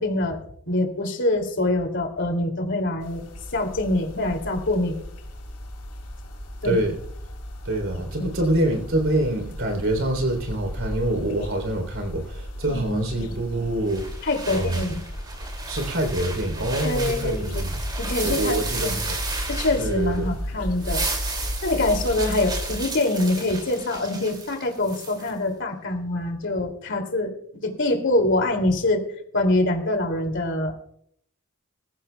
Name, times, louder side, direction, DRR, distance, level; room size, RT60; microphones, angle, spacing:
voice 1, 0.0-3.2 3.5-5.0 6.6-6.8 8.2-8.3 12.7-13.4 14.2-15.0 16.8-17.6 18.0-19.0 19.5-21.0 21.6-29.1 29.3-30.8, left 2 dB, 55° left, 4 dB, 2.6 m, -25 dB
sound 1, 3.0-22.8, equal, 85° left, 5.0 m, -34 dB
voice 2, 6.6-7.0 7.6-14.8 15.7-17.7 18.2-19.2 19.8-20.3, right 1 dB, 65° right, 5 dB, 3.4 m, -26 dB
sound 2, 13.9-20.3 20.6-25.3, right 3 dB, 20° right, 2.5 m, -34 dB
21.5 x 14.5 x 2.3 m, 0.69 s
head